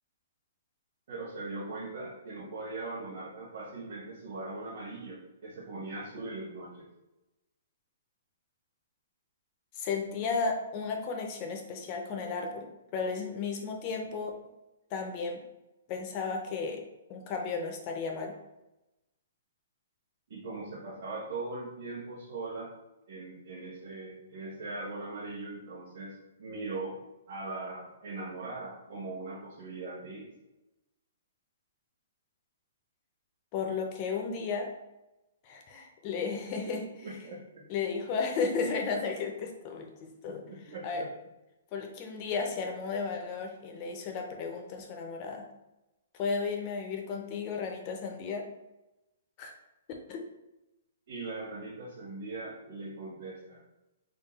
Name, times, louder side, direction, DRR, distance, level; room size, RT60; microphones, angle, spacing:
voice 1, 1.1-6.9 20.3-22.7 23.1-27.0 27.3-30.3 36.6-36.7 37.0-37.6 40.3-41.1 51.1-53.6, right 3 dB, 40° right, -9 dB, 1.0 m, -40 dB
voice 2, 9.8-12.7 12.9-14.3 14.9-15.4 15.9-16.8 17.1-18.3 33.5-34.7 35.4-36.8 37.7-40.4 40.8-41.0 41.7-45.5 46.1-48.5 49.4-49.5 50.1-50.2, left 5 dB, 20° left, 3 dB, 0.4 m, -34 dB
3.7 x 2.2 x 4.0 m, 0.97 s
hypercardioid pair, 180°, 0 cm